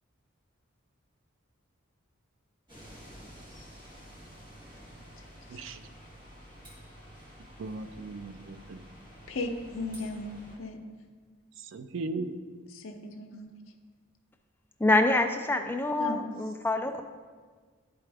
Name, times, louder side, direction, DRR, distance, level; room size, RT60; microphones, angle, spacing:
sound 1, 2.7-10.6, equal, 20° right, 1.6 m, -50 dB
voice 1, 7.6-8.8 11.6-12.4, right 3 dB, 60° right, 10 dB, 0.4 m, -37 dB
voice 2, 9.3-10.3 10.6-10.8 12.7-13.5 16.0-16.2, left 2 dB, 65° left, 4 dB, 0.7 m, -36 dB
voice 3, 14.8-17.0, left 2 dB, 10° left, 5 dB, 0.3 m, -26 dB
10.0 x 4.7 x 3.4 m, 1.6 s
head